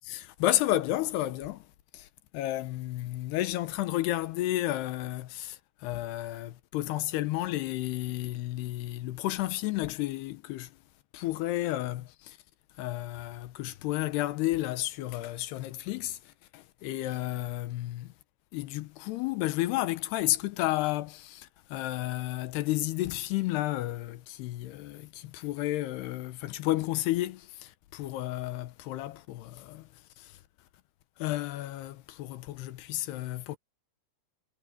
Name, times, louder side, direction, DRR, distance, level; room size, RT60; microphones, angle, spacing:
voice 1, 0.1-1.6 1.9-2.1 2.3-10.7 11.1-12.4 12.8-18.1 18.5-29.9 30.2-30.4 31.2-33.6, left 15 dB, 80° left, 2.9 m, -32 dB
omnidirectional pair, 4.8 m